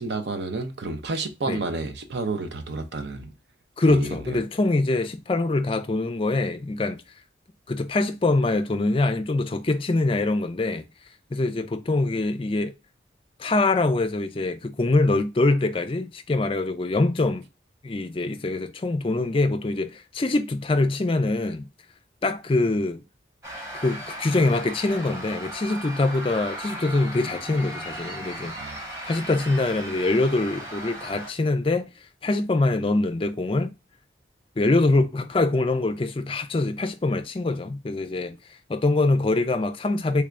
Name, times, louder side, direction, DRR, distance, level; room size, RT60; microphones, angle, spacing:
voice 1, 0.0-3.3 3.9-4.4 28.5-28.9, right 3 dB, 70° right, 0.6 m, -31 dB
voice 2, 3.8-7.0 7.7-10.9 11.3-12.7 13.4-17.4 17.8-21.7 22.2-23.0 23.8-28.5 29.1-31.9 32.2-33.7 34.6-38.4 38.7-40.2, left 2 dB, 30° left, 0.4 m, -24 dB
sound 1, 23.4-31.3, right 1 dB, 15° right, 0.9 m, -37 dB
3.4 x 3.3 x 2.4 m
head